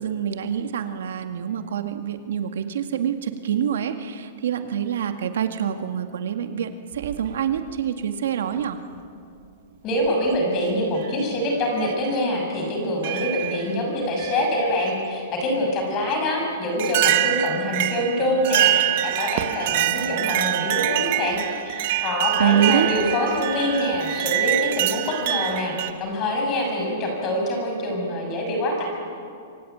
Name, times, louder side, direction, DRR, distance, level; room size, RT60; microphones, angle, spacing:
voice 1, 0.0-8.8 22.4-22.9, right 9 dB, 75° right, 7 dB, 2.0 m, -26 dB
sound 1, 6.9-7.8 8.9-9.0 10.1-10.4 11.0-11.1 11.8-11.9 13.0-13.7 14.2-15.0 16.1-16.2 16.8-25.9, right 14 dB, 45° right, 1.3 m, -25 dB
voice 2, 9.8-21.4 21.6-28.8, left 1 dB, 20° left, 1 dB, 6.5 m, -25 dB
26.5 x 24.0 x 9.4 m, 2.4 s
supercardioid pair, 180°, 0 cm